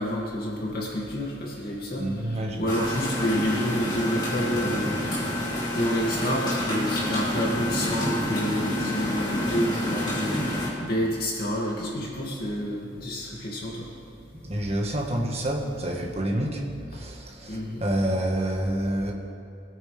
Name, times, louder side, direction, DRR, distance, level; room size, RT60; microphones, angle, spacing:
voice 1, 0.0-13.9 17.5-17.8, equal, 55° left, -4 dB, 2.5 m, -29 dB
voice 2, 2.0-2.8 14.3-16.6 16.9-19.1, right 1 dB, 35° right, 0 dB, 1.6 m, -28 dB
sound 1, 2.7-10.7, equal, 25° left, 3.1 m, -28 dB
22.0 x 9.2 x 3.5 m, 2.7 s
head